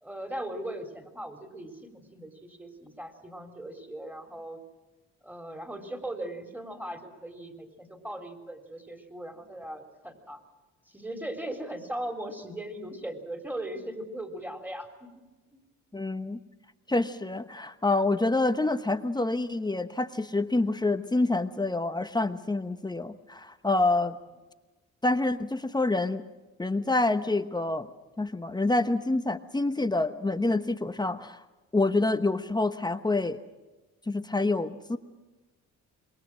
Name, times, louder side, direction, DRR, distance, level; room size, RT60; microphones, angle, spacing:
voice 1, 0.0-4.6 5.2-10.4 10.9-15.2 15.5-15.6, right 1 dB, 5° right, 5 dB, 3.8 m, -39 dB
voice 2, 15.9-16.4 16.9-24.1 25.0-26.2 26.6-27.9 28.2-31.4 31.7-33.4 34.1-35.0, left 2 dB, 15° left, 9 dB, 1.1 m, -27 dB
26.5 x 22.0 x 6.2 m, 1.2 s
cardioid pair, 90°, 30 cm